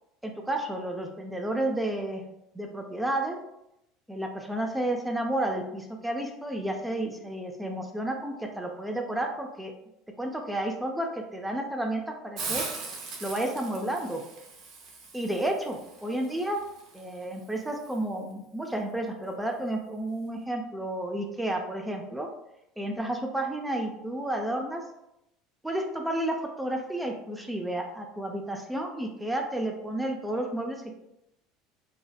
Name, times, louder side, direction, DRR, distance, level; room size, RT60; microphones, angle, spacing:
voice 1, 0.2-2.2 2.5-3.4 4.1-9.7 10.2-12.6 13.2-14.2 15.1-16.6 16.9-22.3 22.8-24.8 25.6-30.9, right 1 dB, 5° right, 2 dB, 0.4 m, -31 dB
Hiss, 12.4-18.0, right 4 dB, 60° right, 0.6 m, -40 dB
2.7 x 2.0 x 2.3 m, 0.83 s
hypercardioid pair, 90°, 0 cm